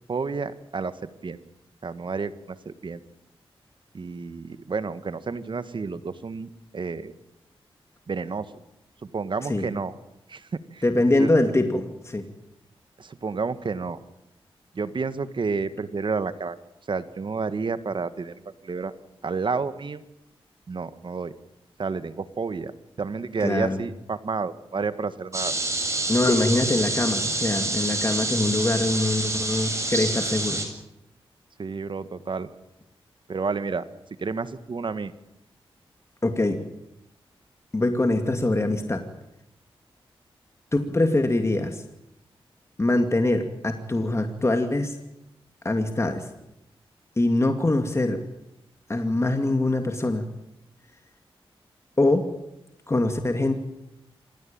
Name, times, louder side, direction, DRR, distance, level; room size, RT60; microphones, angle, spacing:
voice 1, 0.1-0.9 1.2-1.4 1.8-3.0 3.9-7.1 8.1-8.5 9.1-9.9 10.3-10.8 11.2-11.3 13.0-14.0 14.7-16.6 16.9-18.9 19.2-20.0 20.7-21.3 21.8-22.7 23.0-25.5 31.6-32.5 33.3-33.8 34.2-35.1, right 4 dB, 55° right, 12 dB, 1.7 m, -30 dB
voice 2, 10.8-12.3 23.4-23.8 26.1-30.6 36.2-36.6 37.7-39.0 40.7-41.8 42.8-45.0 45.6-46.3 47.2-48.2 48.9-50.3 52.0-52.3 52.9-53.6, left 2 dB, 30° left, 6 dB, 2.5 m, -23 dB
sound 1, 25.3-30.6, right 2 dB, 30° right, 7.3 m, -27 dB
26.5 x 16.0 x 8.9 m, 0.86 s
cardioid pair, 65°, 10 cm